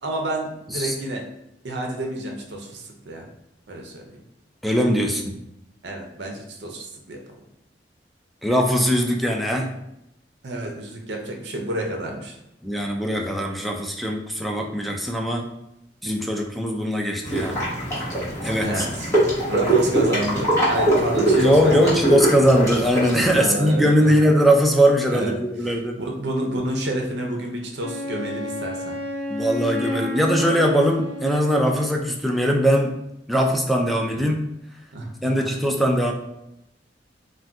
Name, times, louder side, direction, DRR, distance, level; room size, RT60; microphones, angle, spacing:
voice 1, 0.0-1.2 1.6-3.3 3.7-4.1 5.8-7.2 10.4-12.4 18.6-19.1 19.5-22.1 23.3-24.1 25.1-25.3 26.0-29.0 34.1-34.2 34.9-35.1, right 1 dB, 70° right, 1 dB, 0.6 m, -29 dB
voice 2, 4.6-5.3 8.4-9.7 12.6-15.5 16.0-17.6 18.4-18.9 21.4-25.9 29.3-32.9 33.3-34.4 35.2-36.1, equal, ahead, 1 dB, 0.3 m, -20 dB
sound 1, 17.2-23.3, right 1 dB, 15° left, 1.0 m, -22 dB
Wind instrument woodwind instrument, 27.8-32.1, left 1 dB, 45° right, 1.0 m, -31 dB
2.6 x 2.2 x 3.4 m, 0.83 s
head